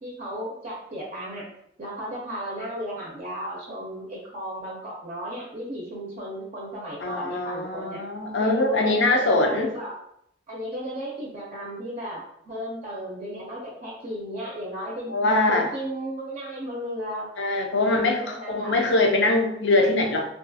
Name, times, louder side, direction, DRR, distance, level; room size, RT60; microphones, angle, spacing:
voice 1, 0.0-1.5 1.8-8.0 8.4-9.9 10.5-17.3 17.7-18.9, equal, 40° right, -4 dB, 0.5 m, -35 dB
voice 2, 7.0-9.7 15.1-15.7 17.4-20.3, left 2 dB, 70° left, 3 dB, 0.5 m, -22 dB
2.4 x 2.3 x 2.6 m, 0.74 s
head